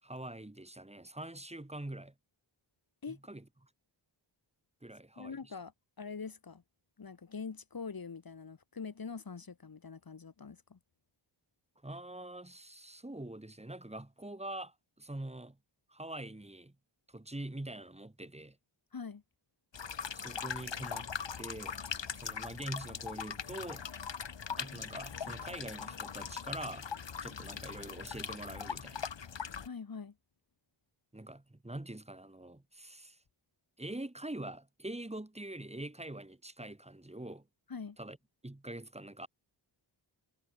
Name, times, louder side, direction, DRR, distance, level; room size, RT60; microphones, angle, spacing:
voice 1, 0.0-2.1 3.1-3.4 4.8-5.5 11.8-15.6 15.9-16.7 17.1-18.6 20.1-21.1 21.4-21.8 22.1-23.9 24.6-26.9 27.2-29.1 31.1-33.2 33.8-37.5 38.0-38.2 38.4-39.3, right 1 dB, 15° right, 5.9 m, -44 dB
voice 2, 5.2-6.6 7.0-10.8 18.9-19.2 29.6-30.1 37.7-38.0, left 5 dB, 45° left, 2.8 m, -44 dB
sound 1, 19.7-29.7, left 6 dB, 65° left, 3.1 m, -41 dB
wide cardioid pair, 135°, 47 cm